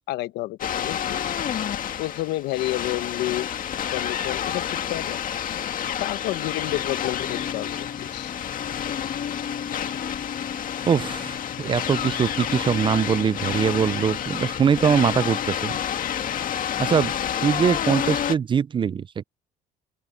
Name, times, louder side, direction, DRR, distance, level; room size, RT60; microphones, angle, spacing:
voice 1, 0.1-1.2 2.0-3.5 3.9-5.2 6.0-8.3 11.5-11.6, left 17 dB, 85° left, 1.0 m, -30 dB
sound 1, 0.6-18.3, left 9 dB, 55° left, 1.9 m, -29 dB
sound 2, 6.6-17.8, left 7 dB, 40° left, 1.6 m, -38 dB
voice 2, 10.9-15.7 16.8-17.1 17.4-19.2, right 7 dB, 30° right, 0.4 m, -22 dB
open air
cardioid pair, 110°, 17 cm